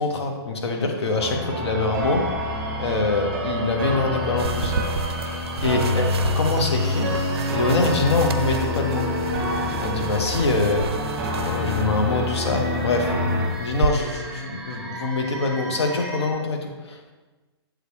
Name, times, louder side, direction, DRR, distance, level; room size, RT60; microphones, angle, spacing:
voice 1, 0.0-2.2 2.8-4.8 5.6-6.1 6.3-7.1 7.5-9.1 9.7-10.9 11.4-13.1 13.6-17.1, left 3 dB, 80° left, 3 dB, 1.3 m, -24 dB
sound 1, 0.7-16.3, right 1 dB, ahead, 0.7 m, -37 dB
sound 2, 1.2-13.4, left 2 dB, 30° right, 2.2 m, -27 dB
sound 3, 4.4-13.9, right 6 dB, 70° right, 0.5 m, -33 dB
7.7 x 5.1 x 3.4 m, 1.2 s
hypercardioid pair, 165°, 14 cm